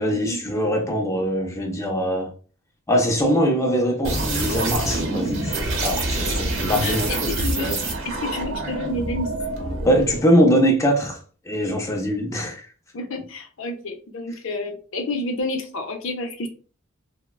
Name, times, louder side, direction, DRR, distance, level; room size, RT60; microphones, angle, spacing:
voice 1, 0.0-2.3 2.9-7.3 9.8-12.7, equal, 15° left, 0.4 m, -22 dB
sound 1, 4.0-10.2, right 2 dB, 70° right, 0.8 m, -26 dB
voice 2, 6.8-7.8 8.0-9.3 12.9-16.5, left 2 dB, 65° left, 0.6 m, -29 dB
3.2 x 2.1 x 2.3 m
head